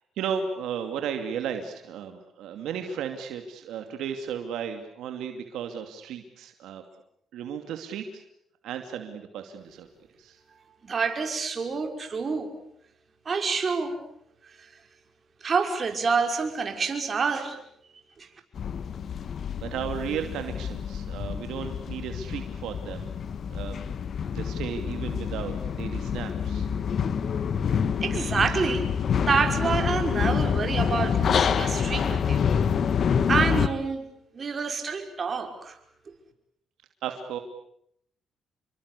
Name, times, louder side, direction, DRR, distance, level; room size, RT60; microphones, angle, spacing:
voice 1, 0.2-6.8 7.3-8.2 8.6-9.9 10.2-10.4 19.6-23.1 23.5-23.8 24.3-26.7 37.0-37.4, right 7 dB, 85° right, 6 dB, 2.7 m, -34 dB
voice 2, 10.8-12.5 13.3-14.0 15.4-17.6 18.2-18.3 28.0-28.9 29.2-32.5 33.3-34.0 34.3-35.8, right 5 dB, 40° right, 5 dB, 5.6 m, -27 dB
sound 1, 18.5-33.7, left 7 dB, 55° left, 1.4 m, -27 dB
28.5 x 23.5 x 8.4 m, 0.71 s
cardioid pair, 90°, 0 cm